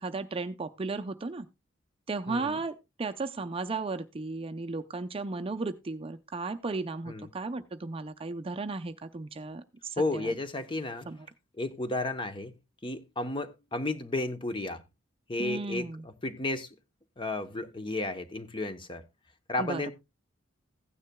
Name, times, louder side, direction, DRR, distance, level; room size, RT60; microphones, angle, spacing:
voice 1, 0.0-1.5 2.1-10.3 11.1-11.2 15.4-16.0 19.6-19.9, right 3 dB, 30° right, 0.5 m, -35 dB
voice 2, 2.3-2.6 7.1-7.3 10.0-11.1 11.6-12.5 12.8-14.8 15.3-16.7 17.2-19.0 19.5-19.9, left 2 dB, 25° left, 0.9 m, -33 dB
15.5 x 9.6 x 2.2 m
head